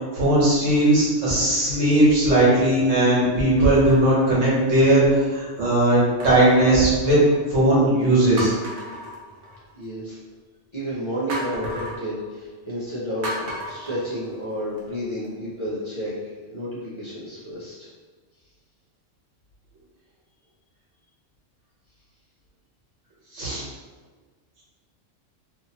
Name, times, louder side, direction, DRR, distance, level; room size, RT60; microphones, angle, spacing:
voice 1, 0.1-7.2 7.5-8.5 23.3-23.6, right 1 dB, 85° right, -8 dB, 1.5 m, -18 dB
sound 1, 0.6-1.1 1.8-1.9 3.6-5.0 6.2-7.6 8.0-8.1 8.4-9.8 11.3-12.0 13.2-14.8 15.2-15.3, right 1 dB, 65° right, 0.9 m, -35 dB
voice 2, 9.7-10.2 10.7-17.9, equal, 30° left, -9 dB, 0.7 m, -31 dB
2.8 x 2.6 x 2.8 m, 1.5 s
omnidirectional pair, 1.3 m